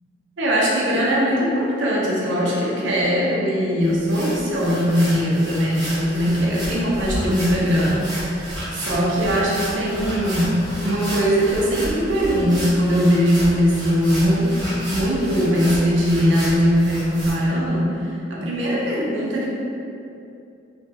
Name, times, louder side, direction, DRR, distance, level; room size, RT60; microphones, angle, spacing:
voice 1, 0.4-8.4 8.7-19.5, equal, 75° right, -5 dB, 0.6 m, -20 dB
sound 1, 3.8-17.3, equal, 20° right, 1.0 m, -32 dB
3.3 x 2.2 x 2.8 m, 2.6 s
head